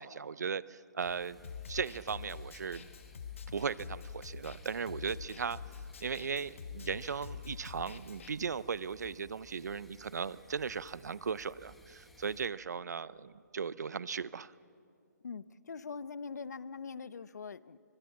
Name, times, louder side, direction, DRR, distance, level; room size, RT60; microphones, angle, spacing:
voice 1, 0.0-1.4 1.7-2.8 3.5-5.6 6.0-14.5, right 6 dB, 65° right, 18 dB, 0.7 m, -37 dB
sound 1, 1.0-12.5, left 1 dB, ahead, 1.0 m, -60 dB
Snare drum, 1.4-8.3, left 6 dB, 45° left, 1.3 m, -46 dB
voice 2, 15.2-17.8, left 5 dB, 65° left, 16 dB, 0.9 m, -43 dB
29.5 x 25.0 x 7.3 m, 2.4 s
hypercardioid pair, 170°, 10 cm